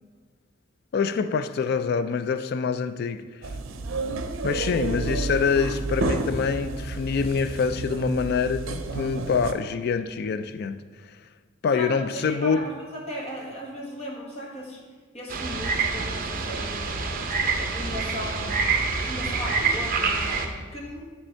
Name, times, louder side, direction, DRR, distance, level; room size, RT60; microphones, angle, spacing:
voice 1, 0.9-3.2 4.4-10.8 11.6-12.6, left 5 dB, 50° left, 12 dB, 0.3 m, -25 dB
sound 1, 3.4-9.5, right 3 dB, 85° right, 0.6 m, -30 dB
voice 2, 11.7-14.8 15.1-17.0 17.5-18.7 19.0-21.0, equal, 30° left, -2 dB, 1.4 m, -37 dB
sound 2, 15.3-20.5, right 4 dB, 45° right, 0.7 m, -26 dB
9.6 x 3.3 x 4.5 m, 1.4 s
head